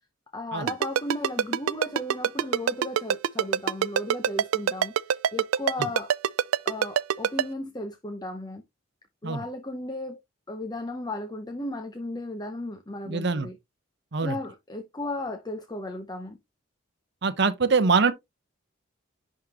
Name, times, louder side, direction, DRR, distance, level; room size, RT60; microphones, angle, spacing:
voice 1, 0.3-6.1 6.6-8.6 9.2-10.2 10.5-13.6 14.2-16.4, left 1 dB, 20° left, 0.7 m, -35 dB
Ringtone, 0.7-7.4, right 8 dB, 85° right, 0.4 m, -23 dB
voice 2, 13.1-13.5 14.1-14.4 17.2-18.1, right 4 dB, 55° right, 0.8 m, -23 dB
11.0 x 3.7 x 2.8 m
head